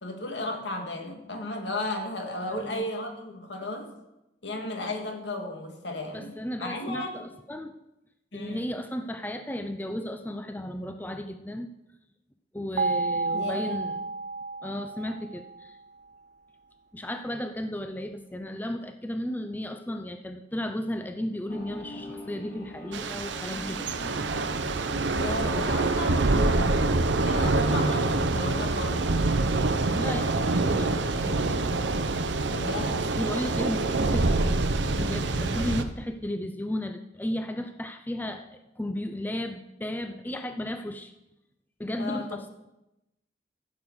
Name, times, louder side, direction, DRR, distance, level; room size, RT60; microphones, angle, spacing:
voice 1, 0.0-3.9 4.4-6.3 6.6-7.3 8.3-8.7 13.3-13.8 25.1-26.9 27.2-29.1 32.5-33.1 35.4-35.7 42.0-42.3, left 1 dB, 80° left, 3 dB, 2.1 m, -34 dB
voice 2, 2.5-2.9 6.1-7.7 8.3-11.7 12.5-14.0 14.6-15.8 16.9-23.9 30.0-31.6 33.2-34.7 34.9-41.1 41.8-42.5, left 1 dB, 10° left, 7 dB, 0.5 m, -34 dB
sound 1, 12.8-15.7, right 3 dB, 40° right, 0.4 m, -31 dB
sound 2, 21.5-27.4, left 1 dB, 55° left, 2.4 m, -44 dB
Thunder / Rain, 22.9-35.8, right 2 dB, 85° right, 0.8 m, -26 dB
15.0 x 7.0 x 4.8 m, 0.92 s
head